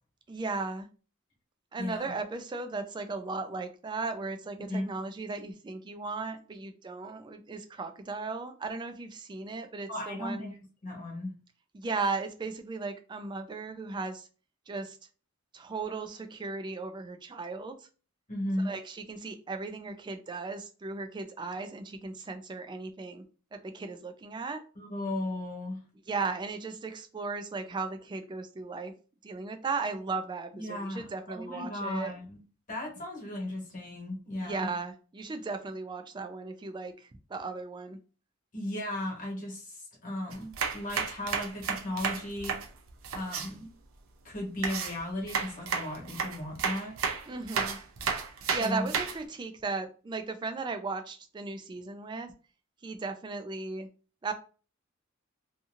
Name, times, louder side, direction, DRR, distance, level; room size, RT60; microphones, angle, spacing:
voice 1, 0.3-0.9 1.7-10.5 11.7-14.3 14.7-15.0 15.5-17.9 18.6-23.2 23.5-24.6 26.1-28.9 29.2-32.1 34.4-38.0 47.3-47.8 48.5-52.3 52.8-53.9 54.2-54.3, right 3 dB, 20° right, 0.3 m, -36 dB
voice 2, 1.8-2.1 4.6-4.9 9.9-10.6 10.8-11.3 18.3-18.7 24.7-25.8 30.5-32.4 32.7-34.7 38.5-42.5 43.1-43.7 44.2-46.9 48.6-48.9, left 1 dB, 40° left, 1.2 m, -36 dB
sound 1, 40.3-43.5 44.6-49.2, right 6 dB, 80° right, 0.5 m, -32 dB
2.7 x 2.6 x 2.5 m
head